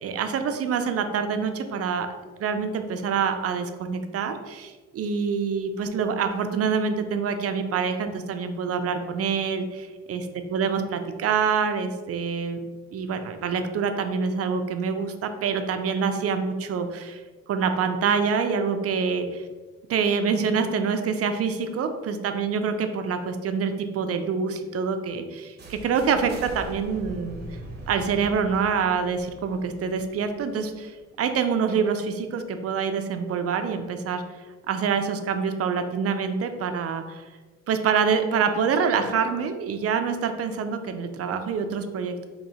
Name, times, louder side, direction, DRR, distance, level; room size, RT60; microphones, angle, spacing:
voice 1, 0.0-2.1 2.4-10.2 10.5-12.6 12.9-17.2 17.5-19.4 19.9-27.4 27.9-34.2 34.7-37.2 37.7-42.3, right 6 dB, 50° right, 7 dB, 0.5 m, -26 dB
sound 1, 25.6-31.4, right 1 dB, 35° right, 0.8 m, -42 dB
2.9 x 2.7 x 4.1 m, 1.3 s
cardioid pair, 90°, 30 cm